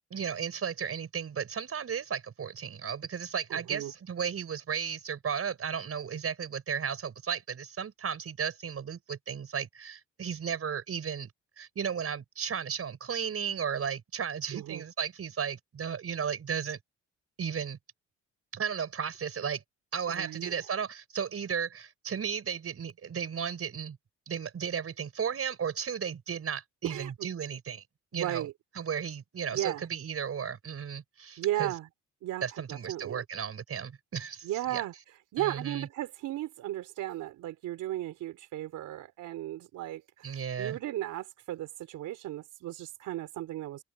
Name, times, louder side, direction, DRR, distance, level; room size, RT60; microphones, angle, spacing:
voice 1, 0.1-11.3 11.6-16.8 17.4-17.8 18.5-19.6 19.9-24.0 24.3-27.8 28.1-28.5 28.7-31.7 32.4-34.9 35.4-35.9 40.2-40.8, right 7 dB, 50° right, 6.0 m, -34 dB
voice 2, 3.5-3.9 14.5-14.8 20.1-20.6 26.8-27.1 28.1-28.5 29.5-29.9 31.4-31.9 32.2-33.2 34.4-34.9 35.3-43.8, right 14 dB, 85° right, 3.6 m, -35 dB
cardioid pair, 90°, 30 cm